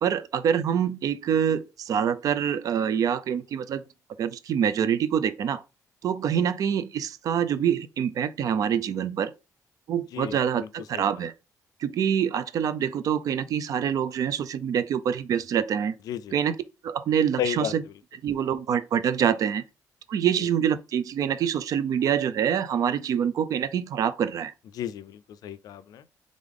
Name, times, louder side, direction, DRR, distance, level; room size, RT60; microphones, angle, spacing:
voice 1, 0.0-3.8 4.2-5.6 6.0-9.3 9.9-11.3 11.8-15.9 16.3-16.5 16.8-17.8 18.2-19.6 20.1-24.5, right 8 dB, 65° right, 0.5 m, -25 dB
voice 2, 10.1-11.0 16.1-16.3 17.4-17.7 20.4-20.5 24.7-26.1, left 10 dB, 75° left, 0.4 m, -33 dB
3.6 x 3.5 x 3.7 m
cardioid pair, 110°, 6 cm